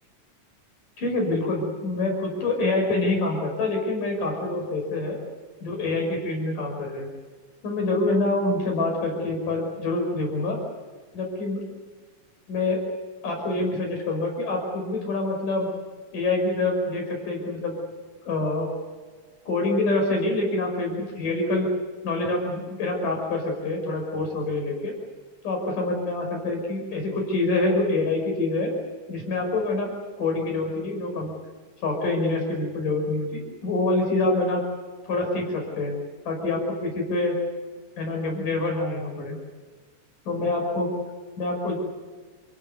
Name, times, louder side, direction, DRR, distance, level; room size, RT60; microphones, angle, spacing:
voice 1, 1.0-5.2 5.6-7.1 7.6-10.6 11.1-11.6 12.5-12.8 13.2-15.7 16.1-17.8 18.2-18.7 19.5-21.7 22.0-24.9 25.4-28.7 29.1-31.3 31.8-34.7 35.0-36.0 36.3-37.3 38.0-39.4 40.3-40.9 41.4-41.8, left 2 dB, 80° left, 1 dB, 7.3 m, -26 dB
29.5 x 16.5 x 8.2 m, 1.4 s
omnidirectional pair, 3.7 m